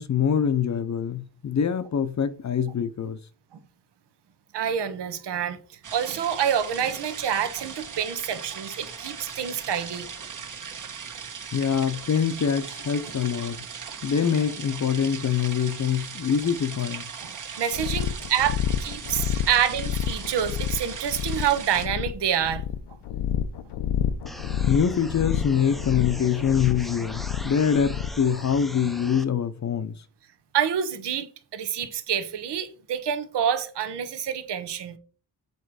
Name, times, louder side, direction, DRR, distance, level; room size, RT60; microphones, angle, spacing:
voice 1, 0.0-3.2 11.5-13.6 14.0-17.0 24.7-29.9, left 7 dB, 45° left, 0.7 m, -24 dB
voice 2, 4.5-10.1 17.2-22.6 30.5-35.0, right 9 dB, 80° right, 1.2 m, -27 dB
sound 1, 5.8-21.9, right 6 dB, 45° right, 1.5 m, -38 dB
sound 2, 17.7-28.3, left 9 dB, 85° left, 0.7 m, -29 dB
sound 3, 24.3-29.3, equal, ahead, 0.5 m, -40 dB
8.1 x 4.5 x 4.8 m
wide cardioid pair, 130°, 41 cm